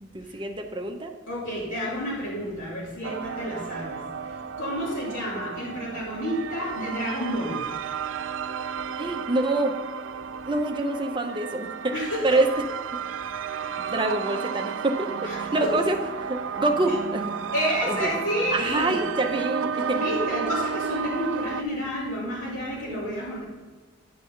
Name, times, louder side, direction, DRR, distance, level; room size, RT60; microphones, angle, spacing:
voice 1, 0.0-1.1 9.0-9.8 10.5-11.9 12.2-12.5 13.8-16.0 16.3-17.4 17.9-18.0 18.5-20.0 22.9-23.1, right 2 dB, 25° right, 5 dB, 0.7 m, -26 dB
voice 2, 1.3-7.6 11.9-12.2 15.2-15.9 16.9-17.0 17.5-19.0 19.9-23.4, equal, 85° left, -8 dB, 2.8 m, -30 dB
sound 1, 3.0-21.6, right 6 dB, 85° right, 0.4 m, -32 dB
10.0 x 4.1 x 5.6 m, 1.3 s
head